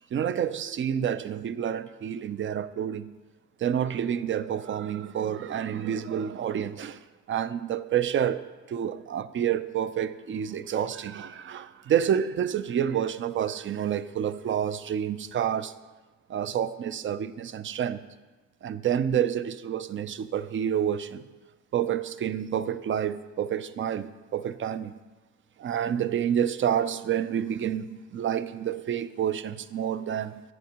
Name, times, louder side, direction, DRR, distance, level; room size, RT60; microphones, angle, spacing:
voice 1, 0.1-3.1 3.6-8.4 8.7-15.7 16.3-18.0 18.6-21.3 21.7-24.9 25.6-30.4, right 9 dB, 40° right, 0.5 m, -29 dB
10.5 x 9.2 x 2.9 m
cardioid pair, 90°, 30 cm